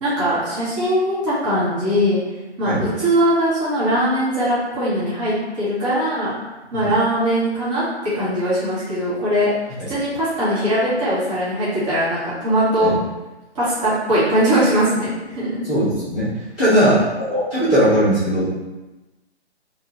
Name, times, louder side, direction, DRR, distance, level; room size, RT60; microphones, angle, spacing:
voice 1, 0.0-2.2 2.6-6.3 6.7-9.5 9.9-12.9 13.5-15.6 16.6-16.9, equal, 25° right, -11 dB, 1.0 m, -20 dB
voice 2, 15.6-16.3 16.6-17.0 17.3-18.5, equal, 5° left, -19 dB, 0.4 m, -19 dB
2.7 x 2.4 x 2.9 m, 1.1 s
figure-of-eight pair, 140°, 34 cm